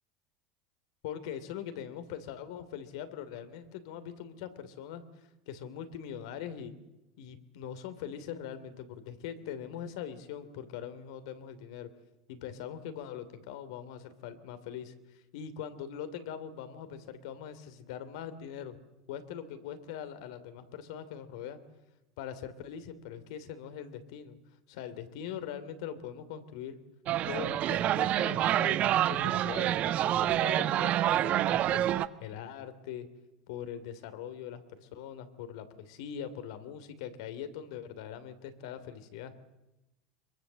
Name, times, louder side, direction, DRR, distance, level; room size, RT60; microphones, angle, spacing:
voice 1, 1.0-6.7 7.2-11.9 12.3-18.8 19.1-21.6 22.2-24.4 24.7-26.8 27.3-31.8 32.2-33.1 33.5-39.3, left 9 dB, 70° left, 11 dB, 3.0 m, -42 dB
sound 1, 27.1-32.1, right 12 dB, 50° right, 1.1 m, -27 dB
25.0 x 23.0 x 7.6 m, 0.98 s
hypercardioid pair, 80°, 3 cm